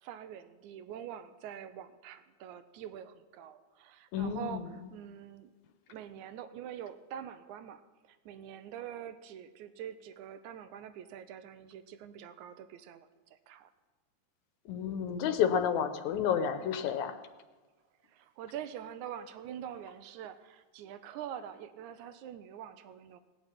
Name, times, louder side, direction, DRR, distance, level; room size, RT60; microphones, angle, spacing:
voice 1, 0.0-5.5 5.9-13.7 18.0-23.2, right 9 dB, 90° right, 11 dB, 2.1 m, -45 dB
voice 2, 4.1-4.6 14.7-17.1, left 8 dB, 80° left, 8 dB, 2.2 m, -30 dB
18.5 x 6.6 x 8.9 m, 1.3 s
omnidirectional pair, 3.4 m